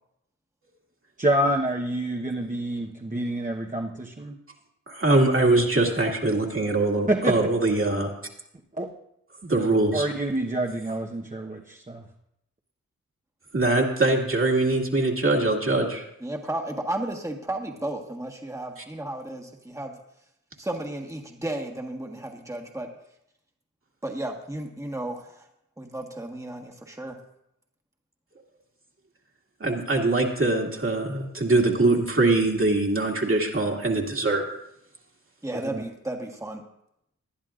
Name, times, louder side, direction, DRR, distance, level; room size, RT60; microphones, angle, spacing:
voice 1, 1.2-4.3 7.1-7.4 8.8-8.9 9.9-12.0 35.5-35.8, right 1 dB, 25° right, 0 dB, 1.0 m, -27 dB
voice 2, 4.9-8.1 9.4-10.1 13.5-16.0 29.6-34.4, right 2 dB, 45° right, 0 dB, 2.1 m, -22 dB
voice 3, 16.2-20.0 20.6-22.9 24.0-25.5 25.8-27.2 35.4-36.6, right 1 dB, 10° right, 1 dB, 1.5 m, -33 dB
20.0 x 11.0 x 2.5 m, 0.78 s
cardioid pair, 55°, 30 cm